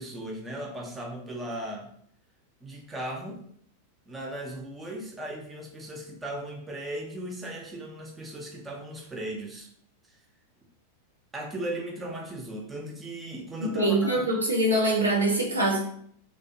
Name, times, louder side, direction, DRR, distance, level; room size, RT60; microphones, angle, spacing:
voice 1, 0.0-1.9 2.6-3.4 4.1-9.7 10.1-10.2 11.3-14.3, right 1 dB, 15° right, 0 dB, 0.4 m, -37 dB
voice 2, 13.6-15.8, right 1 dB, 80° right, -2 dB, 0.6 m, -24 dB
2.5 x 2.0 x 2.5 m, 0.64 s
figure-of-eight pair, 90°, 0 cm